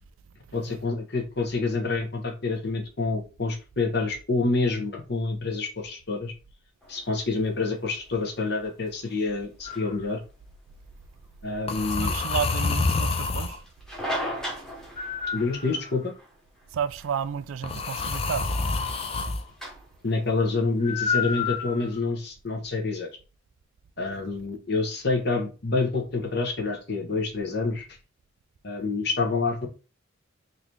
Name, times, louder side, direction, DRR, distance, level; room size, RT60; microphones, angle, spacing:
voice 1, 0.5-6.3 6.9-10.2 11.4-12.1 15.3-16.1 20.0-23.1 24.0-27.9 28.6-29.7, left 3 dB, 55° left, 1.0 m, -27 dB
sound 1, 6.8-21.9, equal, 5° left, 1.1 m, -41 dB
sound 2, 9.7-10.0 11.7-13.6 15.0-16.1 17.6-19.4 20.8-22.0, left 4 dB, 30° left, 0.4 m, -28 dB
voice 2, 11.9-13.6 16.7-18.6, right 7 dB, 75° right, 0.3 m, -31 dB
3.9 x 2.8 x 3.2 m
head